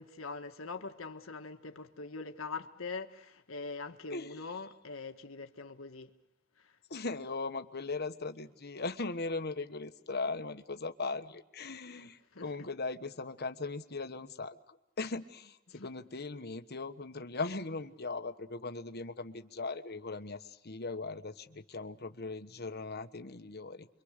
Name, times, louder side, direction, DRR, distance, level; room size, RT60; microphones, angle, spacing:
voice 1, 0.0-6.1 6.6-6.8 11.9-12.5 15.7-15.9, left 4 dB, 75° left, 1.7 m, -43 dB
voice 2, 6.9-23.9, left 3 dB, 50° left, 1.3 m, -39 dB
29.0 x 24.0 x 6.6 m
head